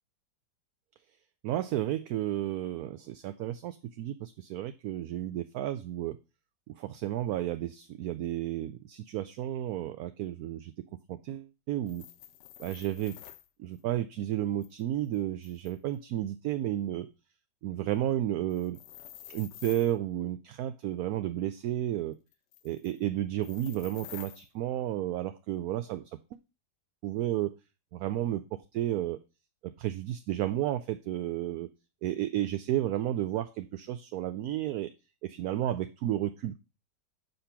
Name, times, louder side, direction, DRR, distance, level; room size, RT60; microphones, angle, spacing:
voice 1, 1.4-6.2 6.7-10.7 11.1-12.1 12.6-13.2 13.6-17.1 17.6-18.8 19.3-22.2 22.6-26.0 27.0-27.5 27.9-29.2 29.6-31.7 32.0-34.9 35.2-36.6, right 12 dB, 70° right, 10 dB, 1.0 m, -32 dB
sound 1, 11.8-13.5 14.6-15.9 18.5-19.9 22.3-23.0 23.4-24.5, left 12 dB, 80° left, 1.3 m, -49 dB
6.7 x 5.2 x 5.7 m, 0.29 s
omnidirectional pair, 1.8 m